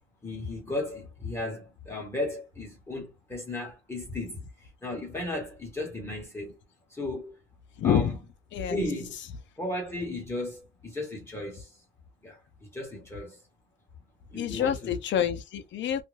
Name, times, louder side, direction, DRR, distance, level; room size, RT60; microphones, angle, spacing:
voice 1, 0.2-4.5 4.8-6.6 6.9-7.3 7.8-8.2 8.7-9.1 9.6-11.7 12.2-13.4 14.3-15.0, left 2 dB, 10° left, 1.0 m, -35 dB
voice 2, 7.8-8.2 8.5-8.8 14.4-16.0, left 9 dB, 65° left, 0.5 m, -27 dB
2.5 x 2.2 x 3.1 m
cardioid pair, 170°, 21 cm